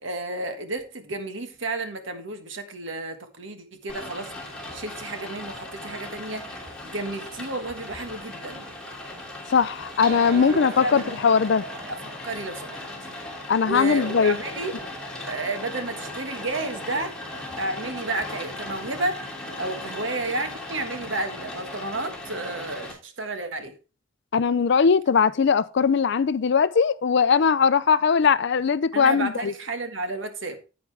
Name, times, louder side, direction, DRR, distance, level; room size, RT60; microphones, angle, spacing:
voice 1, 0.0-4.3 4.7-8.7 10.2-11.1 11.8-12.8 13.6-14.8 15.3-17.2 17.6-23.7 28.9-30.6, right 2 dB, 60° right, 1.6 m, -32 dB
Rain, 3.9-22.9, left 1 dB, 5° left, 2.7 m, -38 dB
voice 2, 9.5-11.6 13.5-14.4 24.3-29.5, left 6 dB, 60° left, 0.4 m, -20 dB
sound 1, 10.0-14.7, right 2 dB, 45° right, 2.1 m, -42 dB
9.4 x 9.1 x 3.4 m
head